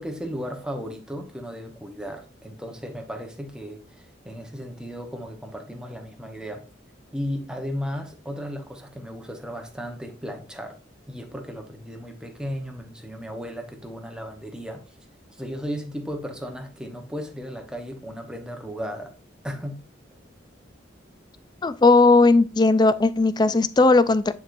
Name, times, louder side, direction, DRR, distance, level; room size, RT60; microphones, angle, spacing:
voice 1, 0.0-6.6 7.1-10.8 11.1-14.8 15.4-19.1 19.4-19.9, equal, 5° right, 1.0 m, -35 dB
voice 2, 21.6-24.3, left 3 dB, 20° left, 0.3 m, -17 dB
9.3 x 4.6 x 2.6 m
head